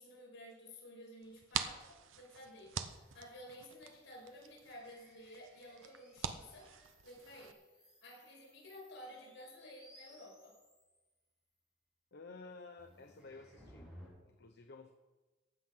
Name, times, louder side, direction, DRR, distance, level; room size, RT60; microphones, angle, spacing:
voice 1, 0.0-6.7 7.0-7.6 8.0-10.6, left 1 dB, 75° left, -2 dB, 5.5 m, -53 dB
sound 1, 1.2-7.5, right 7 dB, 80° right, 0.9 m, -45 dB
sound 2, 2.8-11.0 12.8-14.1, equal, 5° right, 5.6 m, -62 dB
voice 2, 12.1-13.9 14.2-14.9, left 3 dB, 55° left, 5 dB, 0.9 m, -53 dB
15.0 x 9.7 x 5.9 m, 1.2 s
head